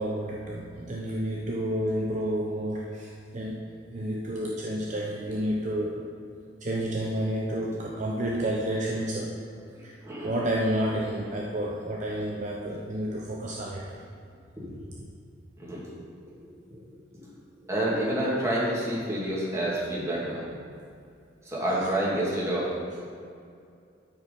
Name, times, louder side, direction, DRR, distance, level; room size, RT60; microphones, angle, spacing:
voice 1, 0.0-3.6 3.9-6.1 6.6-9.4 9.8-9.9 10.2-14.0, right 1 dB, 40° right, -2 dB, 0.7 m, -30 dB
voice 2, 9.7-10.3 14.6-14.7 15.6-15.9 16.2-16.4 16.7-16.8 17.6-20.5 21.4-23.0, right 1 dB, 15° right, -7 dB, 2.3 m, -29 dB
12.0 x 4.7 x 5.3 m, 2.4 s
head